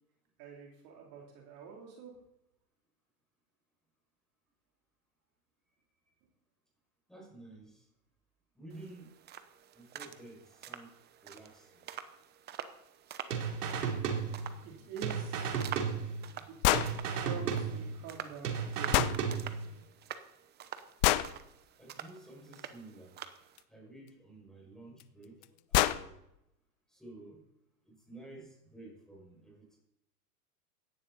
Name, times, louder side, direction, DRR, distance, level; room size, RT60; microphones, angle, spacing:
voice 1, 0.4-2.1 14.6-15.7 16.5-16.7 17.2-19.4, right 5 dB, 45° right, -1 dB, 3.4 m, -47 dB
voice 2, 7.1-7.8 8.5-9.1 9.7-10.9 11.2-11.9 21.8-23.2 23.7-25.4 25.7-26.2 26.9-27.4 27.8-29.8, right 2 dB, ahead, -2 dB, 5.9 m, -52 dB
sound 1, 8.7-23.6, right 10 dB, 20° right, 0.9 m, -47 dB
sound 2, 13.3-14.7 15.0-16.5 16.7-18.2 18.4-19.8, right 6 dB, 75° right, 3.2 m, -34 dB
sound 3, 16.6-16.9 18.9-19.2 21.0-21.3 23.6-23.7 25.0-25.1 25.4-25.5 25.7-26.0, left 16 dB, 30° left, 0.4 m, -26 dB
16.5 x 11.5 x 4.1 m, 0.82 s
hypercardioid pair, 130°, 47 cm